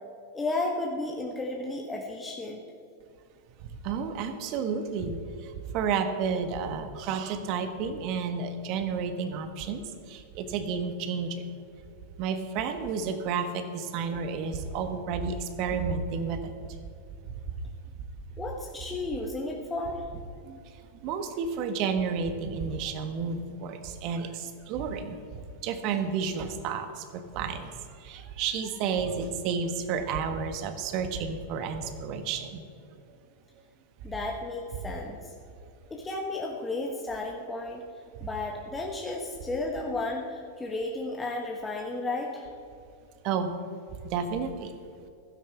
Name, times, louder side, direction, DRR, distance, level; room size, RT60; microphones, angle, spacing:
voice 1, 0.3-2.6 18.4-20.0 34.0-35.3 35.9-37.8 38.2-42.5, left 2 dB, 15° left, -1 dB, 1.4 m, -33 dB
voice 2, 3.8-11.4 12.2-16.5 20.4-20.6 21.0-25.2 25.6-32.6 43.2-43.5 44.0-44.7, right 6 dB, 45° right, 8 dB, 1.4 m, -31 dB
15.5 x 12.5 x 3.5 m, 2.5 s
figure-of-eight pair, 95°, 0 cm